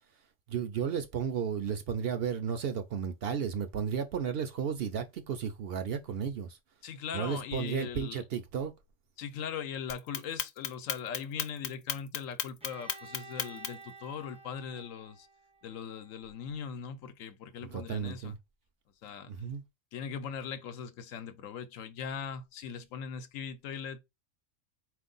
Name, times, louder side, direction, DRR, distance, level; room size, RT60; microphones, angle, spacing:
voice 1, 0.5-6.6 7.1-8.7 17.6-18.3 19.3-19.6, right 7 dB, 60° right, 0.7 m, -33 dB
voice 2, 6.8-8.2 9.2-15.3 15.6-18.4 19.0-19.3 19.9-24.0, left 7 dB, 85° left, 1.1 m, -40 dB
Clock, 9.9-13.9, left 8 dB, 65° left, 0.9 m, -34 dB
Bowed string instrument, 12.6-16.4, right 3 dB, 5° right, 0.6 m, -52 dB
4.4 x 2.6 x 3.8 m
omnidirectional pair, 1.3 m